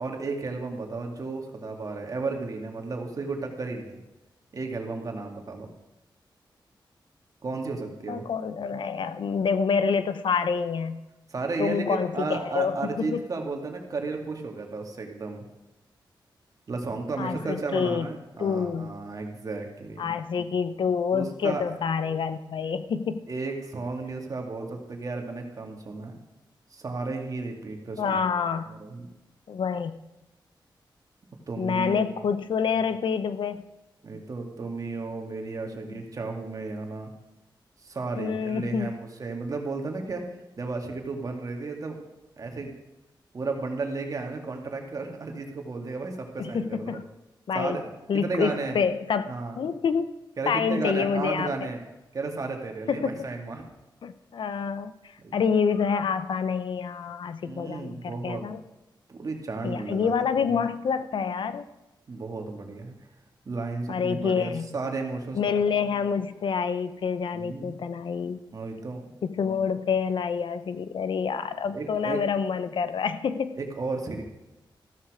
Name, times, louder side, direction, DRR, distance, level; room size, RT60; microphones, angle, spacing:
voice 1, 0.0-4.0 4.5-5.7 7.4-8.3 11.3-15.4 16.7-20.1 21.1-21.6 23.3-26.2 26.7-28.2 28.7-29.1 31.5-32.1 34.0-37.1 37.8-42.0 42.4-42.7 43.3-47.0 47.5-47.9 48.1-48.8 49.3-49.6 50.4-51.8 52.1-53.7 55.2-55.4 57.4-58.5 59.1-60.1 60.5-60.7 62.1-63.0 63.5-65.6 67.3-67.8 68.5-69.1 71.7-72.2 73.6-74.2, right 3 dB, 45° right, 2 dB, 2.3 m, -33 dB
voice 2, 8.1-11.0 11.6-13.2 17.2-18.1 18.4-18.9 20.0-23.3 28.0-28.7 29.5-30.0 31.6-33.7 35.9-36.0 38.2-38.9 46.4-47.0 47.5-47.8 48.1-50.1 50.5-51.7 52.9-53.1 54.0-54.9 55.3-58.6 59.6-61.7 63.9-64.7 65.3-68.4 69.2-73.6, left 6 dB, 75° left, 12 dB, 0.8 m, -27 dB
14.5 x 13.0 x 5.0 m, 1.0 s
wide cardioid pair, 155°, 8 cm